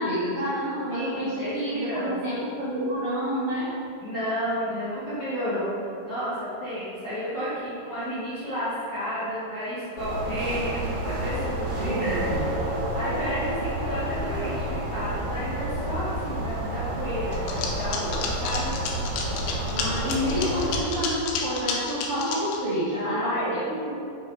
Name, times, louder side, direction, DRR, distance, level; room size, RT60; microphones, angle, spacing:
voice 1, 0.0-3.7 11.7-12.6 19.6-24.0, equal, 75° right, -9 dB, 1.2 m, -28 dB
voice 2, 0.9-2.4 4.0-12.2 12.5-18.7 20.4-20.5 22.9-23.6, equal, 45° left, -12 dB, 1.4 m, -32 dB
sound 1, 10.0-20.8, right 1 dB, 55° right, 1.6 m, -30 dB
sound 2, 17.3-22.6, left 5 dB, 80° left, 2.8 m, -31 dB
6.6 x 6.0 x 4.7 m, 2.6 s
omnidirectional pair, 4.6 m